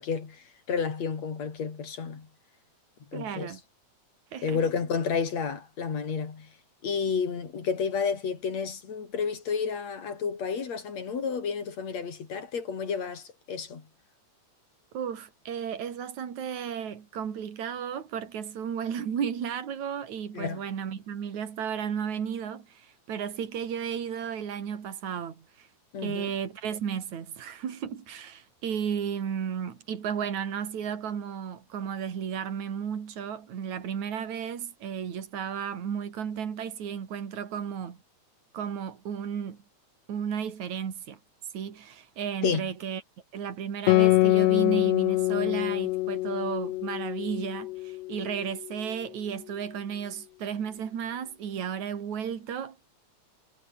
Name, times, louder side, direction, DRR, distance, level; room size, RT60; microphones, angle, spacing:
voice 1, 0.0-2.3 3.1-3.5 4.4-6.5 6.8-13.8 20.3-20.6 25.9-26.3 42.4-42.7, left 6 dB, 65° left, 4.6 m, -31 dB
voice 2, 3.1-3.6 4.3-4.6 14.9-25.7 26.0-38.0 38.5-39.6 40.1-41.2 41.5-43.0 43.3-52.8, right 8 dB, 75° right, 4.0 m, -34 dB
Guitar, 43.9-48.8, left 19 dB, 80° left, 1.5 m, -25 dB
omnidirectional pair, 3.3 m